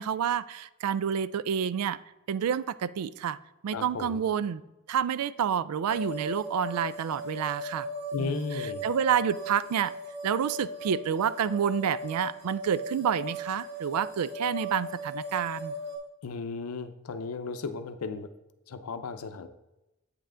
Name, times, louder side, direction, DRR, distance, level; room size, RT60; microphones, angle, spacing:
voice 1, 0.0-2.0 2.3-3.4 3.6-4.6 4.9-7.9 8.2-9.9 10.2-15.7, right 8 dB, 90° right, 17 dB, 0.3 m, -29 dB
voice 2, 3.7-4.2 8.1-8.8 16.2-18.3 18.7-19.5, left 4 dB, 80° left, 10 dB, 0.6 m, -35 dB
sound 1, 5.9-16.0, left 1 dB, 50° right, 1.4 m, -37 dB
8.2 x 5.5 x 3.7 m, 0.97 s
head